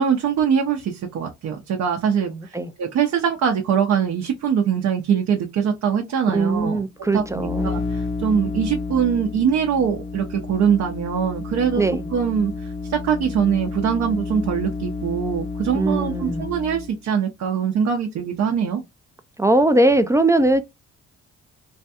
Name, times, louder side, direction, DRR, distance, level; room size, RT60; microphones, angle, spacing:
voice 1, 0.0-6.8 7.1-11.9 12.1-18.8, right 7 dB, 60° right, 0.6 m, -22 dB
voice 2, 2.3-2.7 6.3-7.8 11.8-12.1 15.7-16.5 19.4-20.6, right 2 dB, 10° right, 0.3 m, -20 dB
sound 1, 7.1-17.0, left 4 dB, 70° left, 0.7 m, -30 dB
3.2 x 2.2 x 2.7 m
cardioid pair, 90°, 30 cm